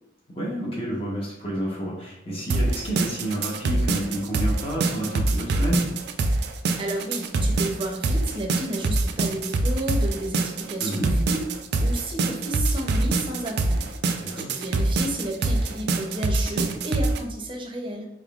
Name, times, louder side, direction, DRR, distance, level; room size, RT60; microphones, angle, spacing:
voice 1, 0.3-5.9 10.8-11.1 14.2-14.5, right 1 dB, 30° left, -4 dB, 0.9 m, -30 dB
sound 1, 2.5-17.2, right 2 dB, 65° right, 0.4 m, -24 dB
voice 2, 6.8-14.0 14.4-18.1, right 1 dB, 30° right, 1 dB, 0.6 m, -32 dB
4.1 x 3.5 x 2.4 m, 0.84 s
head